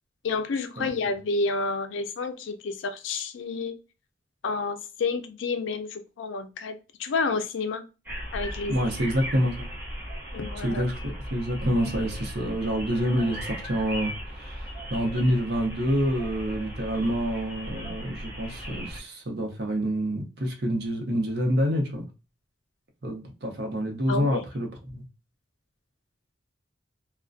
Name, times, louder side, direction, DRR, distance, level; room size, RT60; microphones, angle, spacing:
voice 1, 0.2-3.8 4.4-7.8 8.3-8.9 10.3-10.8 24.1-24.4, left 4 dB, 80° left, 0.4 m, -30 dB
sound 1, 8.1-19.0, equal, 10° right, 0.7 m, -37 dB
voice 2, 8.7-9.7 10.6-22.0 23.0-25.0, equal, 55° right, 0.6 m, -27 dB
2.4 x 2.1 x 2.4 m
head